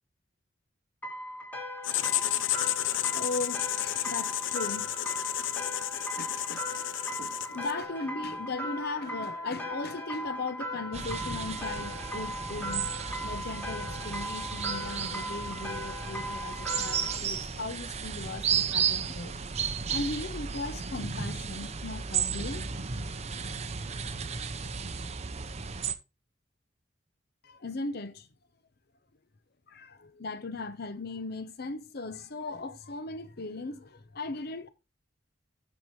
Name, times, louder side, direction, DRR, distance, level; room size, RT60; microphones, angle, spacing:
sound 1, 1.0-17.2, equal, 10° left, 1.5 m, -38 dB
Writing, 1.8-7.8, left 13 dB, 75° left, 0.5 m, -32 dB
voice 1, 3.1-4.9 6.2-6.9 7.2-19.4 19.9-22.7 27.4-28.3 29.7-34.7, left 3 dB, 55° left, 0.9 m, -38 dB
sound 2, 10.9-25.9, right 6 dB, 35° right, 0.6 m, -34 dB
12.5 x 4.5 x 3.2 m
head